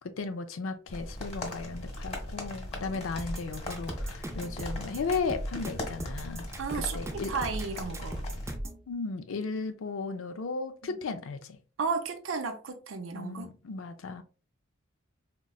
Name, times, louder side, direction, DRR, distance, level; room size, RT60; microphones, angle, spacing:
voice 1, 0.0-6.5 6.7-7.3 8.9-11.6 13.1-14.2, left 4 dB, 85° left, 0.4 m, -35 dB
sound 1, 0.9-8.6, left 1 dB, 30° left, 1.0 m, -39 dB
sound 2, 3.2-8.8, right 1 dB, 15° right, 0.4 m, -37 dB
voice 2, 6.6-8.2 11.8-13.5, right 5 dB, 80° right, 0.5 m, -33 dB
3.8 x 2.2 x 2.3 m
head